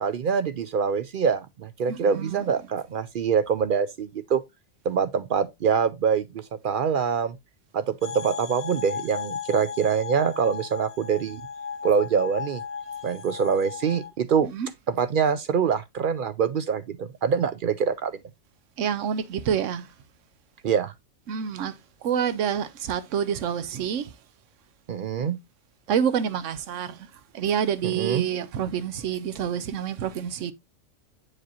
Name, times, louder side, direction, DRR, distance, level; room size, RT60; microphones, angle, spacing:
voice 1, 0.0-4.4 4.9-7.4 7.7-11.4 11.8-12.6 13.0-14.5 14.9-18.1 20.6-20.9 24.9-25.4 27.8-28.3, right 6 dB, 60° right, 0.5 m, -25 dB
voice 2, 1.9-2.5 14.4-14.7 18.8-19.9 21.3-21.8 22.0-24.1 25.2-25.3 25.9-27.1 27.3-30.5, right 8 dB, 85° right, 1.0 m, -27 dB
sound 1, 8.0-14.1, left 6 dB, 35° left, 0.8 m, -36 dB
7.8 x 4.9 x 2.8 m
omnidirectional pair, 1.3 m